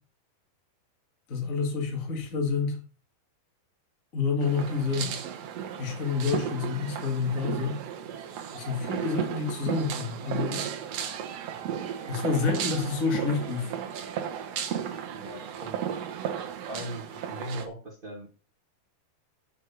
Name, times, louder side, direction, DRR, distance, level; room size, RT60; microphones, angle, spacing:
voice 1, 1.3-2.8 4.1-5.2 5.8-7.8 8.5-10.7 12.1-13.7, left 5 dB, 30° left, 1.7 m, -28 dB
sound 1, 4.4-17.7, right 8 dB, 90° right, 1.4 m, -34 dB
voice 2, 15.1-16.0 16.7-18.3, equal, 25° right, 1.2 m, -39 dB
7.6 x 6.3 x 5.8 m
omnidirectional pair, 4.6 m